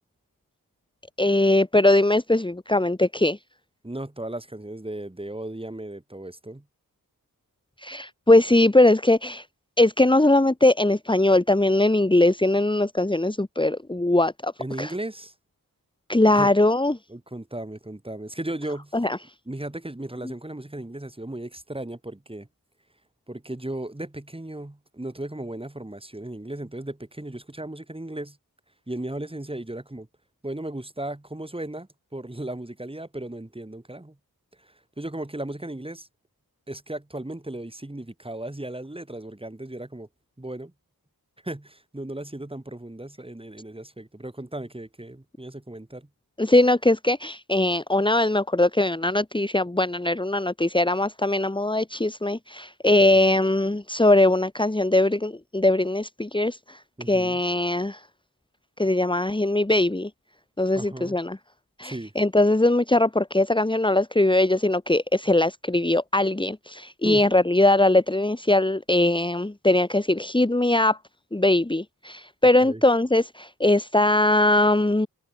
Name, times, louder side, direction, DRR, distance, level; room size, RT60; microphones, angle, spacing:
voice 1, 1.2-3.4 7.8-9.4 9.8-14.5 14.8-14.9 16.1-17.0 18.9-19.2 46.4-56.8 57.1-58.0 58.8-60.1 60.6-61.4 61.8-71.0 71.3-75.1, left 2 dB, 15° left, 2.1 m, -21 dB
voice 2, 3.8-6.6 14.6-15.3 16.3-16.5 17.1-19.0 19.5-22.5 23.3-28.4 28.9-30.1 30.4-34.2 34.6-36.1 36.7-40.1 40.4-40.7 41.4-46.1 57.0-57.4 60.7-61.2 61.8-62.1 67.0-67.3 72.6-72.8, right 1 dB, 15° right, 6.0 m, -36 dB
wide cardioid pair, 95°, 37 cm